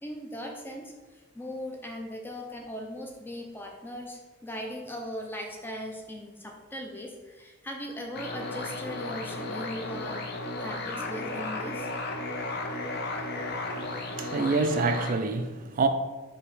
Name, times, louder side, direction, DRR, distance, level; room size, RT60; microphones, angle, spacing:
voice 1, 0.0-11.9, left 1 dB, 10° left, 0.5 m, -39 dB
sound 1, 8.1-15.1, left 2 dB, 55° left, 0.6 m, -34 dB
voice 2, 14.1-15.9, right 3 dB, 40° right, 0.3 m, -26 dB
4.3 x 2.9 x 4.2 m
head